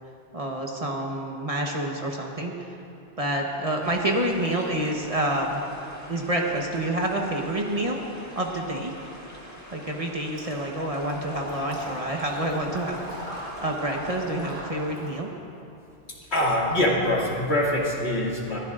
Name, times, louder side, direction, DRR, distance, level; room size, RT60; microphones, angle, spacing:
voice 1, 0.3-2.5 3.2-5.6 6.1-8.0 8.4-8.9 9.7-13.0 13.6-15.3, right 1 dB, 35° right, 0 dB, 1.2 m, -28 dB
sound 1, 3.8-14.6, equal, 15° left, 1.6 m, -45 dB
Water / Liquid, 10.4-15.2, equal, 70° right, 4.4 m, -38 dB
voice 2, 16.2-18.6, left 1 dB, 70° left, -4 dB, 2.6 m, -24 dB
21.0 x 15.0 x 2.5 m, 2.7 s
omnidirectional pair, 1.1 m